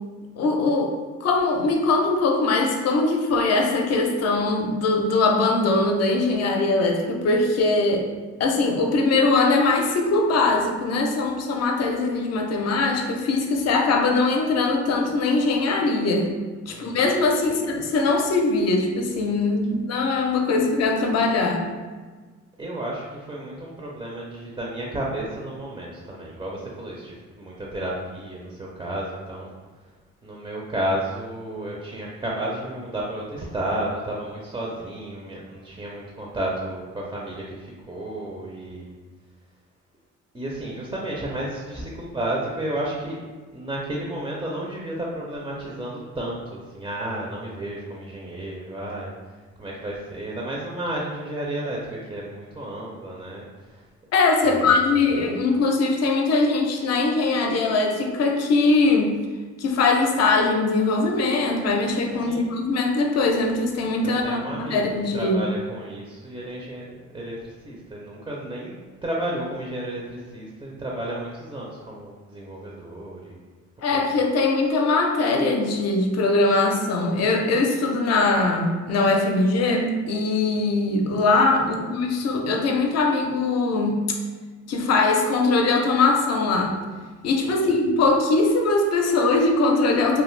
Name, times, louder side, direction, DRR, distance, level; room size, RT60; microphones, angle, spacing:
voice 1, 0.4-1.0 1.2-8.1 8.4-16.3 16.7-21.6 54.1-59.1 59.6-65.4 73.8-84.1 84.7-86.8 87.2-90.2, left 3 dB, 55° left, 2 dB, 0.5 m, -21 dB
voice 2, 16.7-17.1 17.5-17.7 22.6-29.5 30.2-39.0 40.3-43.2 43.5-49.1 49.6-53.8 54.4-55.1 62.3-62.5 64.0-68.7 69.0-73.4 73.9-74.0 81.6-82.0 87.4-87.7, right 1 dB, 15° right, -4 dB, 0.4 m, -32 dB
2.5 x 2.3 x 3.1 m, 1.4 s
cardioid pair, 90°, 30 cm